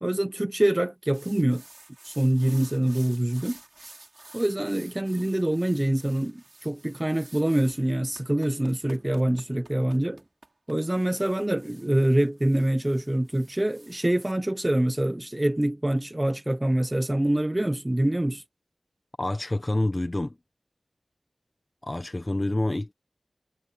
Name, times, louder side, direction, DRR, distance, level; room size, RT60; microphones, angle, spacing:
voice 1, 0.0-1.6 2.0-3.6 4.3-10.2 10.7-18.4, right 1 dB, 20° right, 1.0 m, -25 dB
sound 1, 1.1-14.3, right 2 dB, 50° right, 3.7 m, -51 dB
voice 2, 19.2-20.4 21.8-22.9, left 1 dB, 35° left, 1.3 m, -27 dB
wide cardioid pair, 45°, 0 cm